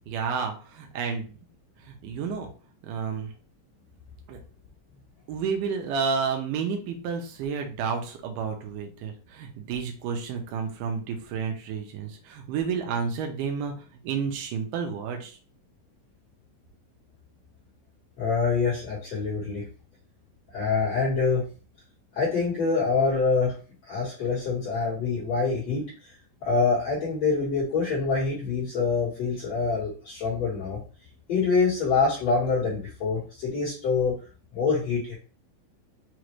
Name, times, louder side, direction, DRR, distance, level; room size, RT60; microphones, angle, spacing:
voice 1, 0.1-1.4 1.8-2.5 2.8-3.3 4.3-4.4 5.3-13.7 14.0-15.4, right 6 dB, 75° right, 3 dB, 2.1 m, -31 dB
voice 2, 18.2-19.7 20.5-21.4 22.1-23.5 23.8-25.9 26.4-30.8 31.3-34.1 34.5-35.2, left 4 dB, 55° left, -7 dB, 2.0 m, -25 dB
6.1 x 2.5 x 3.1 m, 0.37 s
omnidirectional pair, 4.4 m